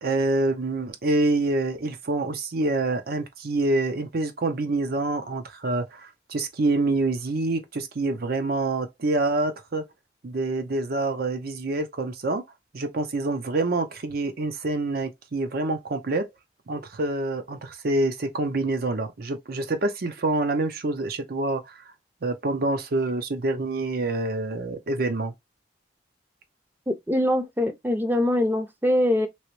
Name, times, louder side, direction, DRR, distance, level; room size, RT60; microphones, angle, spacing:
voice 1, 0.0-9.9 10.2-12.4 12.7-16.3 16.7-21.8 22.2-25.3, right 2 dB, 55° right, 0.6 m, -26 dB
voice 2, 26.9-29.3, left 1 dB, 10° right, 0.5 m, -23 dB
3.1 x 2.9 x 3.0 m
head